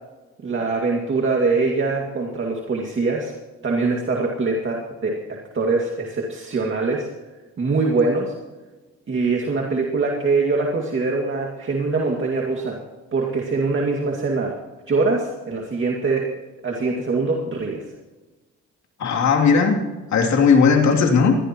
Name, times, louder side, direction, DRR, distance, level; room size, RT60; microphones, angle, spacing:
voice 1, 0.4-3.3 3.6-7.1 7.6-8.3 9.1-12.8 13.1-14.6 14.9-16.3 16.6-17.8, right 3 dB, 40° right, 0 dB, 2.3 m, -23 dB
voice 2, 19.0-19.8 20.1-21.3, left 5 dB, 65° left, 2 dB, 3.0 m, -16 dB
21.5 x 15.5 x 3.1 m, 1.2 s
cardioid pair, 90°, 30 cm